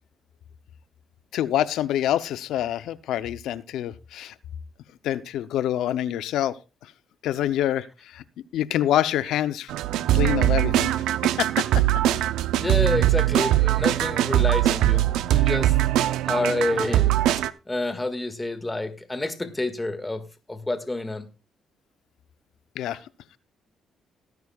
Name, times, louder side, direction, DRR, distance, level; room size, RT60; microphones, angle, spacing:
voice 1, 1.3-4.3 5.0-6.5 7.2-8.2 8.5-9.7 10.1-10.9 11.4-11.8 22.8-23.0, left 12 dB, 85° left, 14 dB, 0.6 m, -26 dB
sound 1, 9.7-17.5, right 14 dB, 90° right, 0.5 m, -21 dB
voice 2, 12.6-15.7 16.2-17.2 17.7-20.2 20.5-21.3, left 2 dB, 15° left, 9 dB, 1.8 m, -28 dB
18.5 x 9.3 x 2.3 m, 0.29 s
cardioid pair, 90°, 0 cm